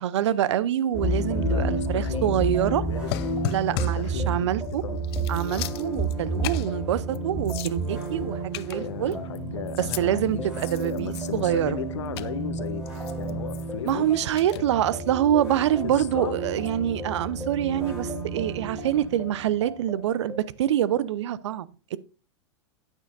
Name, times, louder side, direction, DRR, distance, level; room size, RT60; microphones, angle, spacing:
voice 1, 0.0-2.8 3.5-4.8 5.3-9.2 9.8-11.8 13.8-22.0, right 11 dB, 70° right, 0.6 m, -26 dB
sound 1, 0.9-20.5, right 2 dB, 5° right, 3.3 m, -31 dB
voice 2, 1.2-2.4 2.7-3.1 3.7-4.5 4.8-5.0 8.8-14.1 14.5-14.7 15.8-16.4, left 9 dB, 75° left, 0.9 m, -35 dB
sound 2, 3.1-4.1 4.6-4.7 5.0-6.1 6.4-6.7 7.1-7.2 7.4-8.1 8.5-9.4 9.7-10.0 10.5-11.5 12.2-12.3 12.8-13.9 14.4-14.6, left 14 dB, 60° left, 0.5 m, -36 dB
9.2 x 8.9 x 2.5 m
hypercardioid pair, 110°, 15 cm